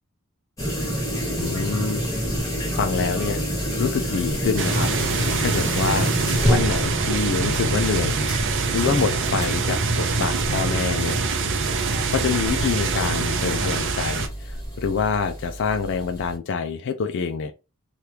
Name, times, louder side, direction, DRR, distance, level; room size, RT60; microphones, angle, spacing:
sound 1, 0.6-16.4, equal, 15° left, 1.4 m, -28 dB
voice 1, 1.4-2.0 2.7-3.4 3.8-6.1 6.4-8.2 8.7-11.2 12.1-17.5, left 5 dB, 55° left, 0.4 m, -26 dB
sound 2, 4.6-14.3, right 4 dB, 55° right, 0.5 m, -24 dB
2.9 x 2.4 x 3.3 m
head